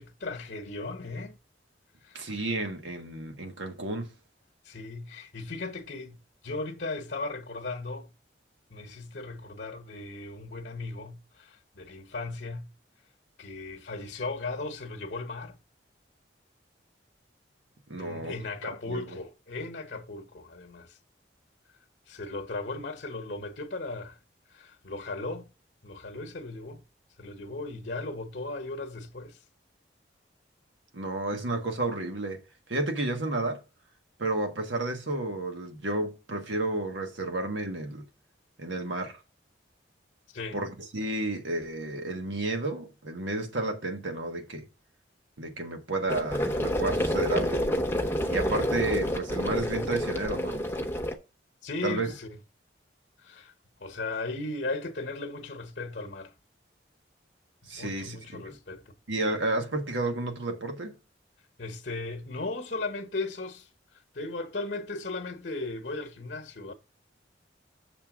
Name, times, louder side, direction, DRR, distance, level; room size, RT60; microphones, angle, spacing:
voice 1, 0.0-1.4 2.0-2.2 4.6-6.2 6.4-8.1 8.7-12.7 13.4-15.6 18.0-21.0 22.1-24.2 24.5-25.5 25.8-26.8 27.2-29.4 40.3-40.6 51.6-52.4 53.2-53.5 53.8-56.3 57.7-58.8 61.6-63.7 64.1-66.7, left 3 dB, 55° left, 1.0 m, -36 dB
voice 2, 2.1-4.1 17.9-18.3 18.9-19.2 30.9-32.4 32.7-33.6 34.2-38.0 38.6-39.2 40.5-44.7 45.4-47.6 48.3-50.7 51.8-52.1 57.7-58.6 59.1-61.0, right 2 dB, 85° right, 1.4 m, -31 dB
sound 1, 46.1-51.1, equal, 10° left, 0.8 m, -28 dB
6.8 x 3.7 x 6.0 m
head